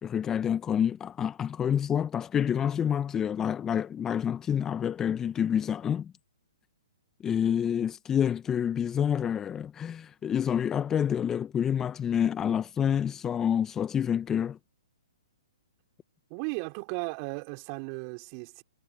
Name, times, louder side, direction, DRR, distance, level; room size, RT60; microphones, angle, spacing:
voice 1, 0.0-6.1 7.2-14.6, left 8 dB, 15° left, 1.1 m, -28 dB
voice 2, 16.3-18.6, right 36 dB, 35° right, 4.7 m, -36 dB
hypercardioid pair, 125°, 3 cm